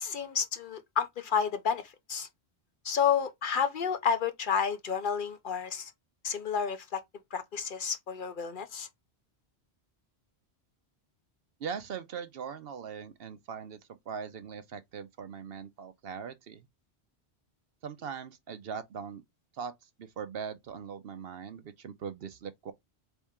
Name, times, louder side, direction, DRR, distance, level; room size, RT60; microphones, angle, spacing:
voice 1, 0.0-2.3 2.8-5.9 6.2-7.0 7.3-8.9, left 7 dB, 55° left, 0.7 m, -30 dB
voice 2, 11.6-16.7 17.8-19.2 19.5-22.7, right 7 dB, 65° right, 0.9 m, -40 dB
4.2 x 3.5 x 3.5 m
omnidirectional pair, 1.1 m